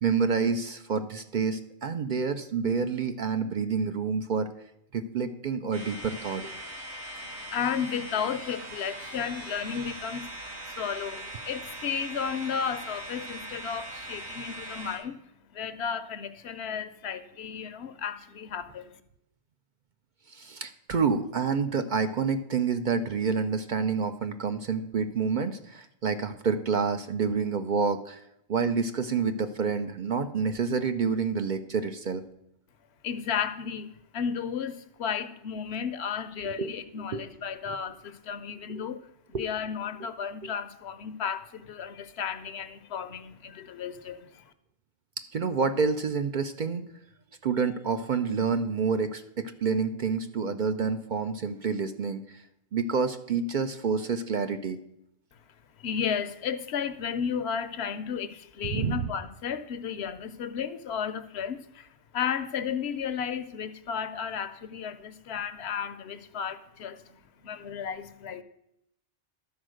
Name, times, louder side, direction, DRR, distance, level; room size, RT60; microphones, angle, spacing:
voice 1, 0.0-4.5 4.9-6.5 20.3-28.2 28.5-32.2 36.4-36.7 37.1-37.3 37.7-37.8 38.7-38.8 39.3-39.5 45.3-46.8 47.4-52.4 52.7-54.8 58.6-59.1, right 5 dB, 55° right, 8 dB, 0.6 m, -28 dB
sound 1, 5.7-15.0, right 1 dB, 75° right, 2.0 m, -41 dB
voice 2, 7.2-18.9 33.0-39.0 39.4-44.4 55.8-68.4, left 7 dB, 70° left, 12 dB, 0.9 m, -33 dB
12.0 x 4.4 x 6.3 m, 0.80 s
omnidirectional pair, 1.2 m